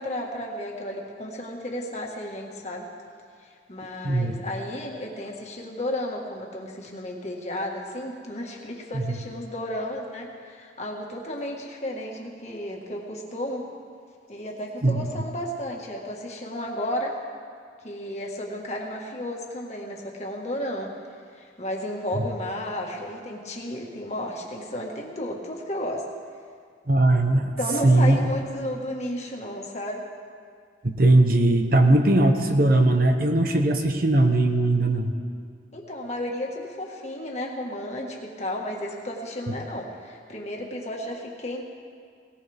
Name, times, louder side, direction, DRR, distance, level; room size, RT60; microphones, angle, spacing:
voice 1, 0.0-2.9 3.4-13.7 14.3-17.2 17.8-20.9 21.3-26.1 27.6-30.0 35.7-41.6, left 1 dB, 35° left, 0 dB, 1.7 m, -33 dB
voice 2, 26.9-27.5 27.8-28.2 30.8-35.1, right 2 dB, 50° right, 5 dB, 1.0 m, -19 dB
18.5 x 18.5 x 3.6 m, 2.2 s
head